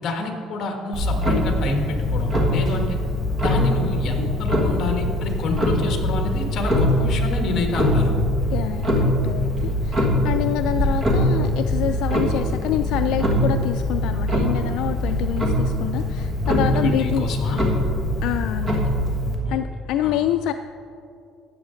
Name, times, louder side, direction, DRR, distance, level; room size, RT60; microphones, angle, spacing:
voice 1, 0.0-3.0 3.4-8.1 16.6-17.6 19.4-19.6 20.0-20.2, left 2 dB, 45° left, 3 dB, 1.4 m, -28 dB
Clock, 0.9-19.3, equal, 25° right, 1.4 m, -22 dB
voice 2, 8.5-17.3 18.2-18.7 19.5-20.5, left 11 dB, 70° left, 7 dB, 0.3 m, -27 dB
13.0 x 8.8 x 3.8 m, 2.5 s
cardioid pair, 165°, 0 cm